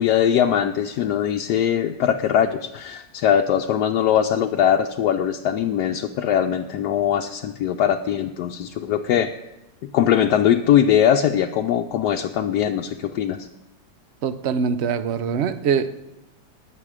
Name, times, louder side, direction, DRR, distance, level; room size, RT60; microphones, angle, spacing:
voice 1, 0.0-9.3 9.9-13.4, left 9 dB, 75° left, 1.2 m, -21 dB
voice 2, 14.2-16.0, right 6 dB, 55° right, 0.8 m, -23 dB
19.5 x 7.5 x 4.9 m
omnidirectional pair, 1.8 m